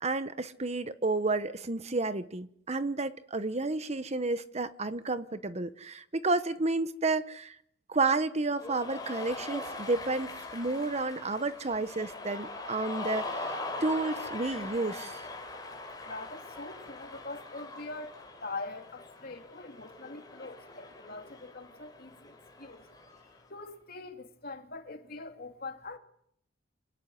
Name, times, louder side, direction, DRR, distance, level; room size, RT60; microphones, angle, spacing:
voice 1, 0.0-7.6 7.9-15.2, right 3 dB, 35° right, 1.0 m, -31 dB
Cheering, 8.5-23.4, left 2 dB, 20° left, 5.5 m, -41 dB
voice 2, 16.0-22.9 23.5-26.0, left 3 dB, 55° left, 2.8 m, -43 dB
27.0 x 17.5 x 9.6 m
head